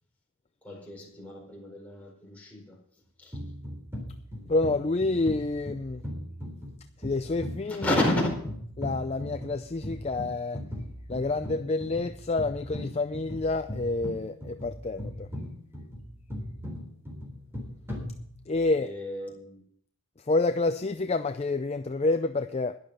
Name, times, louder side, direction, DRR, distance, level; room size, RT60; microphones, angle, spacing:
voice 1, 0.6-2.8 3.2-3.4 7.7-8.3 18.8-19.6, left 1 dB, 5° left, 4.6 m, -31 dB
sound 1, 3.3-18.7, equal, 10° right, 3.6 m, -39 dB
voice 2, 4.5-6.0 7.0-8.0 8.8-10.6 11.1-15.3 18.5-18.9 20.2-22.8, left 3 dB, 30° left, 0.4 m, -28 dB
12.0 x 11.5 x 5.6 m
head